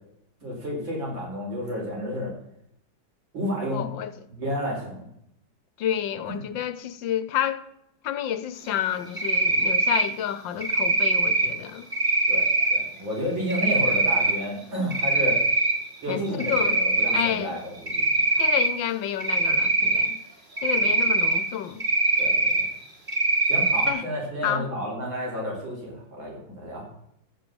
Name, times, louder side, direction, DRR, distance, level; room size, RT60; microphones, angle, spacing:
voice 1, 0.4-2.3 3.3-3.9 4.3-5.1 6.3-6.4 12.3-15.4 16.0-18.5 20.7-20.9 22.2-22.7 23.5-26.8, equal, 70° right, 5.1 m, -31 dB
voice 2, 3.7-4.1 5.8-7.6 8.0-11.9 16.1-16.8 17.1-17.6 18.4-20.2 20.6-21.8 23.9-24.0 24.4-24.7, left 10 dB, 70° left, 1.4 m, -29 dB
Cricket, 9.2-10.0 10.6-11.5 11.9-12.8 13.5-14.3 14.7-15.7 16.1-17.3 17.9-18.7 19.2-20.1 20.6-21.4 21.8-22.6 23.1-23.9, right 2 dB, 25° right, 2.0 m, -22 dB
15.0 x 6.5 x 7.0 m
omnidirectional pair, 2.2 m